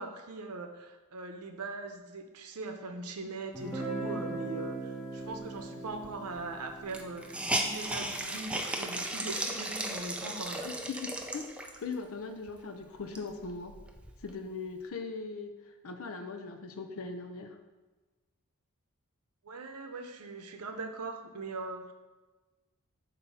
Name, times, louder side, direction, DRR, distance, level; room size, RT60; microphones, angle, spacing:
voice 1, 0.0-10.6 19.4-21.9, right 3 dB, 85° right, 5 dB, 0.7 m, -41 dB
Guitar, 3.5-9.3, right 2 dB, 10° left, 1.7 m, -41 dB
Hiss, 6.0-6.1 6.4-6.5 6.9-11.9 12.5-12.6 13.0-14.3, right 1 dB, 5° right, 0.4 m, -35 dB
voice 2, 10.6-11.5 11.8-13.8 14.2-15.5 15.8-17.6, left 4 dB, 65° left, 6 dB, 0.5 m, -40 dB
7.0 x 2.7 x 5.5 m, 1.2 s
head